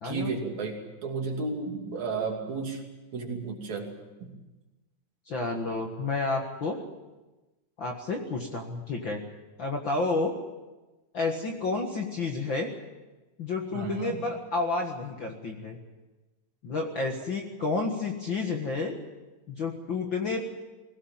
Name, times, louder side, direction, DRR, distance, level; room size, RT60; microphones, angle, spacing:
voice 1, 0.0-2.8 3.1-3.9 4.2-4.3 13.7-14.2, right 4 dB, 60° right, 1 dB, 4.0 m, -33 dB
voice 2, 5.3-6.8 7.8-9.2 9.6-10.3 11.1-12.7 13.4-15.8 16.6-19.0 19.5-20.4, left 3 dB, 45° left, 2 dB, 1.8 m, -30 dB
20.5 x 17.0 x 8.9 m, 1.1 s
omnidirectional pair, 3.9 m